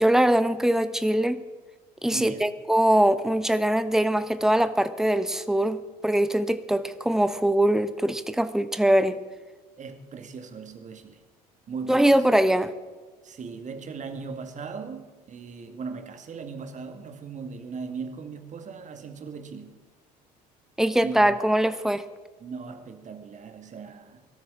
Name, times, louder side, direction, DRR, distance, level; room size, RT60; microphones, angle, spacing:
voice 1, 0.0-1.4 2.0-9.2 11.9-12.7 20.8-22.0, right 1 dB, ahead, 1.0 m, -22 dB
voice 2, 2.1-2.5 9.8-11.2 11.7-12.3 13.2-19.8 21.0-21.4 22.4-24.3, right 5 dB, 35° right, 2.0 m, -38 dB
23.0 x 13.0 x 3.7 m
figure-of-eight pair, 60°, 21 cm